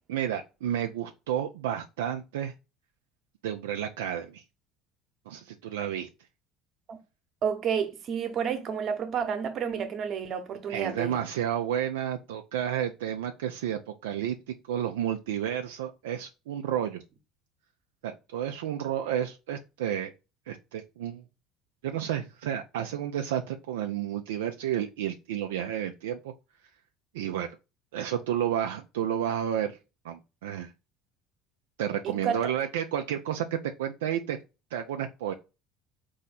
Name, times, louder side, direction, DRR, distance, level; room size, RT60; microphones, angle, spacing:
voice 1, 0.1-2.5 3.4-4.4 5.3-6.1 10.7-17.0 18.0-20.1 20.5-21.2 21.8-26.3 27.1-27.5 27.9-29.8 30.0-30.7 31.8-34.4 34.7-35.3, right 10 dB, 80° right, 0.3 m, -31 dB
voice 2, 7.4-11.2 32.0-32.5, right 7 dB, 50° right, 0.9 m, -30 dB
4.1 x 2.7 x 3.9 m
hypercardioid pair, 65°, 0 cm